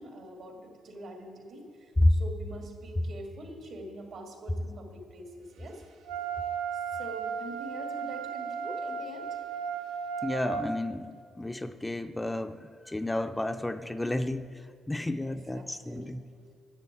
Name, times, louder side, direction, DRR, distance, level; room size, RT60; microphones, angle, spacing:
voice 1, 0.0-5.8 6.7-9.4 15.0-16.1, right 1 dB, 70° right, 2 dB, 2.3 m, -44 dB
Wind instrument woodwind instrument, 6.1-10.7, right 6 dB, 85° right, 0.8 m, -35 dB
voice 2, 10.2-12.6 12.9-14.5 14.9-16.2, left 1 dB, 10° left, 8 dB, 0.5 m, -30 dB
11.0 x 7.6 x 8.5 m, 2.2 s
cardioid pair, 90°, 0 cm